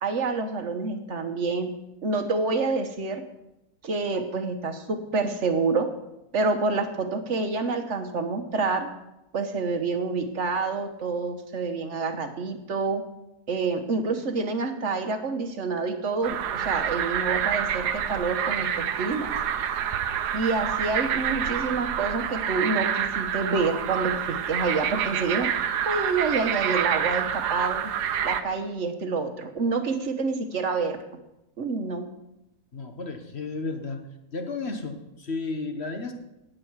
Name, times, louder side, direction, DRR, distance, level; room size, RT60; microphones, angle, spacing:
voice 1, 0.0-1.7 2.0-3.2 3.8-5.9 6.3-8.9 9.3-13.0 13.5-19.3 20.3-25.5 25.8-27.9 28.2-31.0 31.6-32.1, right 4 dB, 50° right, 7 dB, 1.3 m, -27 dB
sound 1, 16.2-28.4, right 9 dB, 85° right, 1.3 m, -28 dB
voice 2, 32.7-34.0 34.3-36.1, left 3 dB, 45° left, 5 dB, 1.4 m, -33 dB
18.0 x 7.6 x 4.7 m, 0.91 s
omnidirectional pair, 1.7 m